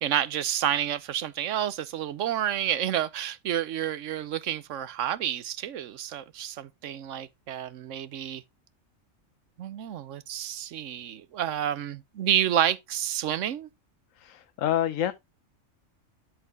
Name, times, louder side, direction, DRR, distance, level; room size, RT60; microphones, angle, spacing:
voice 1, 0.0-8.4 9.6-13.7, right 10 dB, 75° right, 1.1 m, -29 dB
voice 2, 14.1-15.1, left 11 dB, 85° left, 1.1 m, -27 dB
12.0 x 4.6 x 3.5 m
omnidirectional pair, 1.3 m